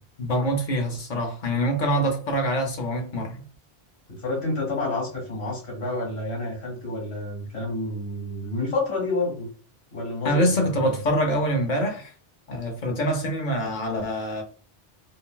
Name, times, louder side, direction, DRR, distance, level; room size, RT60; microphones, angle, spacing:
voice 1, 0.2-3.4 10.2-12.1 12.5-14.4, equal, 50° left, 0.7 m, -25 dB
voice 2, 4.1-9.5 9.9-11.0, left 2 dB, 75° left, 1.9 m, -29 dB
3.7 x 2.1 x 2.2 m
omnidirectional pair, 1.1 m